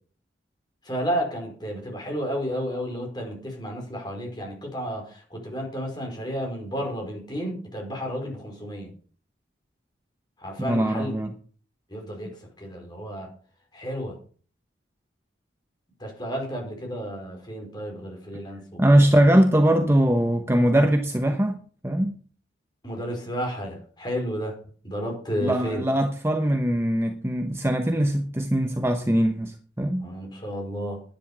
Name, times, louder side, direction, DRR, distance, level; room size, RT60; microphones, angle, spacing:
voice 1, 0.8-8.9 10.4-11.1 11.9-13.3 13.7-14.2 16.0-18.6 19.0-19.1 22.8-24.6 24.8-25.8 30.0-31.0, equal, 20° left, 4.9 m, -32 dB
voice 2, 10.6-11.3 18.8-21.5 21.8-22.2 25.4-30.0, right 1 dB, 15° right, 0.9 m, -21 dB
10.5 x 10.5 x 6.1 m
head